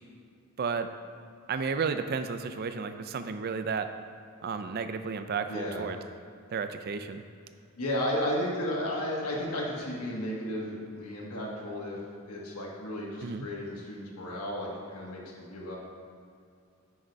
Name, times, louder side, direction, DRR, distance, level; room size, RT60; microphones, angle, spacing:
voice 1, 0.6-0.9 1.5-3.9 4.4-6.0 6.5-7.2 13.2-13.5, right 5 dB, 45° right, 9 dB, 0.4 m, -32 dB
voice 2, 5.5-5.9 7.8-12.0 12.2-15.8, left 1 dB, 85° left, -3 dB, 1.5 m, -33 dB
6.3 x 5.3 x 4.6 m, 2.4 s
head